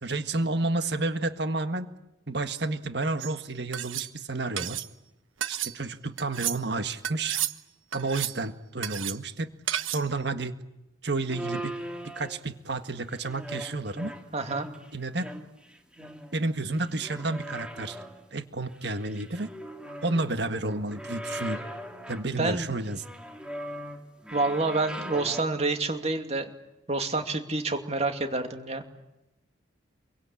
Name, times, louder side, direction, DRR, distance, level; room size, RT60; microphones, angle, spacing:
voice 1, 0.0-1.9 2.3-4.8 5.5-7.4 7.9-9.5 9.9-10.6 11.0-11.8 12.0-14.1 14.9-15.3 16.3-18.0 18.3-19.5 20.0-21.6 22.1-23.0, right 2 dB, 55° right, 9 dB, 1.7 m, -31 dB
sound 1, 3.2-3.3 3.7-4.1 4.6-4.9 5.4-5.7 6.2-6.6 7.0-7.6 7.9-8.4 8.8-9.2 9.7-10.1, right 11 dB, 85° right, 1.3 m, -32 dB
sound 2, 11.3-12.6 13.1-14.9 15.2-16.5 16.8-18.2 18.7-20.3 20.6-22.3 22.9-25.4, right 1 dB, 5° right, 2.6 m, -40 dB
voice 2, 14.3-14.7 22.4-22.7 24.3-26.5 26.9-28.8, right 3 dB, 35° right, 6 dB, 2.6 m, -28 dB
28.5 x 23.5 x 8.5 m, 0.92 s
head